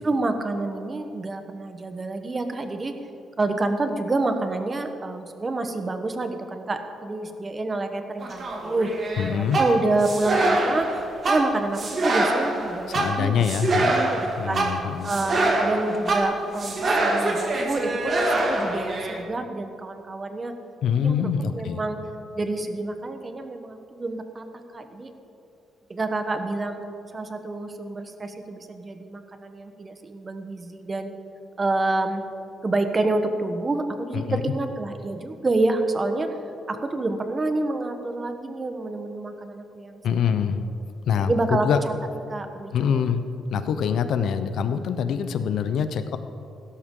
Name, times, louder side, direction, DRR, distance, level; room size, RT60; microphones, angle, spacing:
voice 1, 0.0-2.9 3.4-8.9 9.3-10.9 11.3-13.4 13.8-14.6 15.0-20.6 21.0-22.0 22.4-24.4 24.7-25.1 25.9-26.8 27.1-31.1 31.6-32.2 32.6-36.3 36.7-40.0 41.2-41.7 42.3-42.7, right 2 dB, 25° right, 7 dB, 1.1 m, -28 dB
sound 1, 8.2-19.2, right 2 dB, 40° right, 2.1 m, -24 dB
voice 2, 9.2-9.6 12.9-13.9 14.4-15.1 20.8-21.8 34.1-34.4 40.0-40.6 41.1-41.8 42.7-43.2 43.5-46.2, left 7 dB, 70° left, 10 dB, 0.8 m, -24 dB
16.5 x 13.0 x 3.8 m, 2.7 s
cardioid pair, 115°, 0 cm